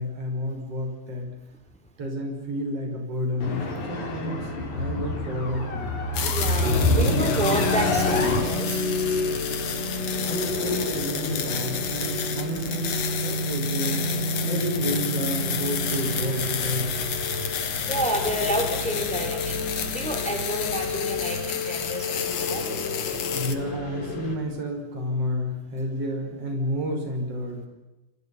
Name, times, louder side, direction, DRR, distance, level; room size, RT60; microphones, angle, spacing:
voice 1, 0.0-1.3 2.0-6.0 10.2-14.0 14.4-17.0 23.3-27.7, equal, 55° right, 2 dB, 6.9 m, -30 dB
sound 1, 3.4-8.4, left 1 dB, 80° left, 5.8 m, -26 dB
sound 2, 6.1-23.6, left 8 dB, 65° left, 2.9 m, -32 dB
voice 2, 6.2-8.9 17.9-22.7, right 1 dB, ahead, 5 dB, 3.4 m, -30 dB
sound 3, 6.6-24.4, left 2 dB, 40° left, 5.0 m, -30 dB
28.5 x 28.5 x 5.7 m, 1.0 s
omnidirectional pair, 3.3 m